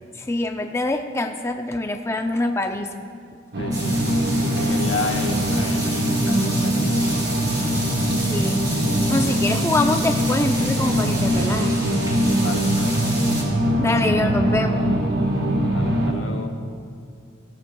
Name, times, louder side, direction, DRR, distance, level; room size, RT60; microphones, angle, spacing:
voice 1, 0.2-3.0 8.2-8.6 9.1-11.8 13.8-14.9, left 2 dB, 15° left, 5 dB, 0.5 m, -24 dB
sound 1, 3.5-16.1, equal, 60° right, 1.3 m, -22 dB
voice 2, 3.6-7.7 12.4-13.1 15.7-16.5, left 2 dB, 85° left, 2 dB, 1.3 m, -32 dB
sound 2, 3.7-13.4, right 1 dB, 20° right, 3.3 m, -32 dB
16.5 x 13.5 x 2.3 m, 2.3 s
head